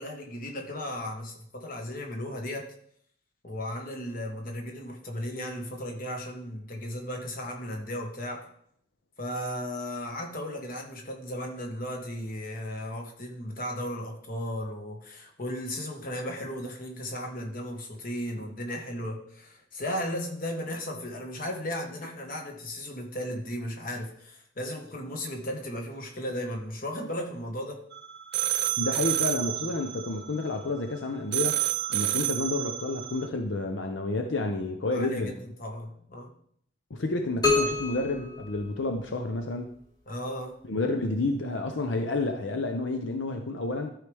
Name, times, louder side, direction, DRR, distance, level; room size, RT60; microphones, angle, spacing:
voice 1, 0.0-2.7 3.4-8.5 9.2-27.8 34.9-36.3 40.1-40.6, equal, 50° left, 2 dB, 1.5 m, -35 dB
sound 1, 27.9-31.0 31.3-33.3, right 13 dB, 60° right, 0.5 m, -29 dB
voice 2, 28.8-31.6 31.9-35.3 36.9-39.7 40.7-43.9, left 2 dB, 80° left, 5 dB, 0.7 m, -30 dB
sound 2, 37.4-39.3, left 3 dB, 20° left, 2.1 m, -28 dB
13.0 x 4.9 x 3.5 m, 0.66 s
head